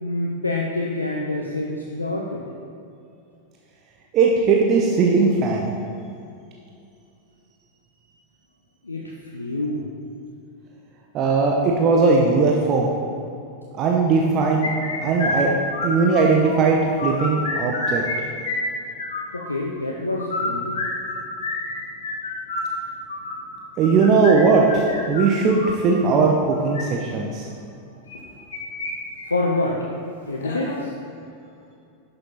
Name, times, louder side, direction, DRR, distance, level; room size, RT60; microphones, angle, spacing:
voice 1, 0.0-2.4 8.8-9.9 19.3-20.8 29.2-29.9 30.3-30.9, left 2 dB, 80° left, -1 dB, 0.7 m, -26 dB
voice 2, 4.1-5.7 11.1-12.9 13.7-14.7 15.0-15.5 15.8-18.0 23.8-27.5, right 4 dB, 35° right, 0 dB, 0.9 m, -19 dB
sound 1, 14.6-16.5 16.8-18.2 18.4-19.4 20.1-25.8 26.5-26.8 28.1-28.9 29.2-29.3 29.7-29.8 30.4-30.8, left 2 dB, 65° left, 1.4 m, -28 dB
11.0 x 6.7 x 4.2 m, 2.5 s
figure-of-eight pair, 90°, 0 cm